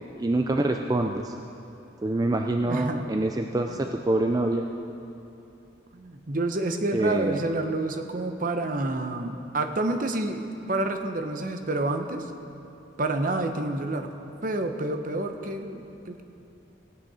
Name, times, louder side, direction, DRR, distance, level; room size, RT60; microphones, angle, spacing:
voice 1, 0.2-1.4 2.0-4.7 6.9-7.4, right 2 dB, 20° right, 4 dB, 0.4 m, -25 dB
voice 2, 2.6-3.1 3.7-3.9 5.9-12.3 13.0-14.1 14.4-16.2, right 2 dB, 45° right, 6 dB, 0.8 m, -29 dB
16.5 x 9.1 x 4.9 m, 2.9 s
head